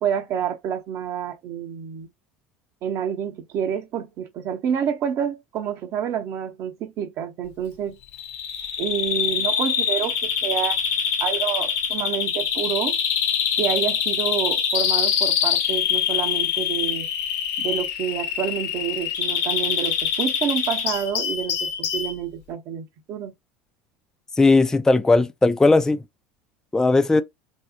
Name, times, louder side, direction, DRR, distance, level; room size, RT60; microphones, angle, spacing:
voice 1, 0.0-2.1 2.8-8.0 8.8-10.8 11.2-13.0 13.6-17.1 17.6-23.3, right 8 dB, 50° right, 0.8 m, -28 dB
Bird vocalization bird call bird song, 8.1-22.1, left 8 dB, 60° left, 0.8 m, -24 dB
voice 2, 24.4-26.0 26.7-27.2, left 3 dB, 10° left, 0.3 m, -17 dB
3.5 x 2.0 x 2.7 m
hypercardioid pair, 75°, 6 cm